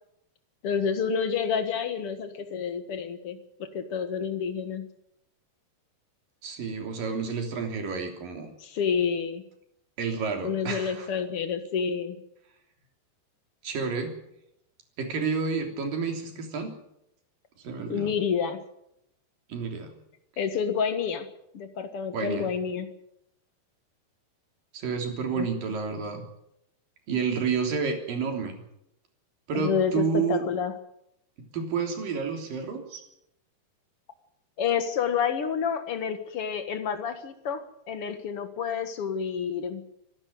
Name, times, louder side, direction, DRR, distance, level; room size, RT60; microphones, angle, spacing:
voice 1, 0.6-4.8 8.6-9.4 10.4-12.2 17.9-18.6 20.4-21.3 21.5-22.9 25.4-25.5 29.5-30.7 34.6-39.8, left 6 dB, 60° left, 9 dB, 1.5 m, -29 dB
voice 2, 6.4-8.5 10.0-11.1 13.6-14.2 15.0-16.7 17.6-18.1 19.5-19.9 22.1-22.5 24.7-26.2 27.1-28.6 29.5-30.5 31.5-33.0, right 5 dB, 55° right, 4 dB, 4.8 m, -30 dB
24.5 x 12.0 x 9.4 m, 0.79 s
omnidirectional pair, 4.8 m